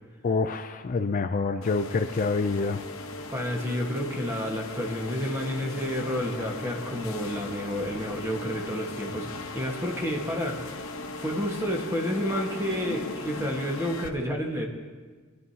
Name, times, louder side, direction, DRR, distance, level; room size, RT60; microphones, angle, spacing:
voice 1, 0.2-2.8, left 4 dB, 40° left, 8 dB, 0.4 m, -27 dB
sound 1, 1.6-14.1, left 2 dB, 70° left, 1.0 m, -38 dB
voice 2, 3.3-10.7 11.2-14.7, equal, 15° right, 0 dB, 1.4 m, -30 dB
23.0 x 10.5 x 2.8 m, 1.4 s
head